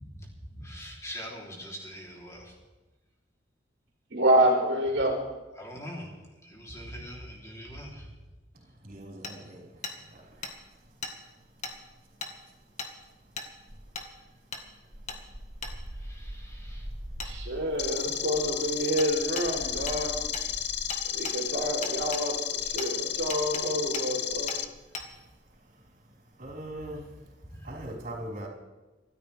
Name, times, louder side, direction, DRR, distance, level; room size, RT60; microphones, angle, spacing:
voice 1, 0.6-2.4 5.6-6.1 6.4-8.0 16.1-16.8, equal, 15° left, -2 dB, 3.5 m, -42 dB
voice 2, 4.1-5.2 17.2-20.3 21.1-24.5, right 1 dB, 75° right, 0 dB, 3.4 m, -27 dB
voice 3, 8.8-9.6 10.1-10.2 26.4-27.0 27.6-28.5, right 1 dB, 50° right, -3 dB, 4.9 m, -39 dB
Hammer, 9.2-9.3 9.8-10.0 10.4-10.5 11.0-11.1 11.6-11.8 12.2-12.3 12.8-12.9 13.4-13.5 14.0-14.1 14.5-14.6 15.1-15.2 15.6-15.7 17.2-17.3 19.0-19.1 19.4-19.5 19.9-20.0 20.3-20.5 20.9-21.4 21.8-22.2 22.8-22.9 23.3-23.6 23.9-24.1 24.5-24.6 24.9-25.1, left 4 dB, 40° left, 1.7 m, -37 dB
sound 1, 10.3-11.1 11.3-24.9 25.1-25.4, equal, 25° right, 6.3 m, -45 dB
sound 2, 17.8-24.6, left 10 dB, 60° left, 0.8 m, -32 dB
26.0 x 13.5 x 3.5 m, 1.1 s
head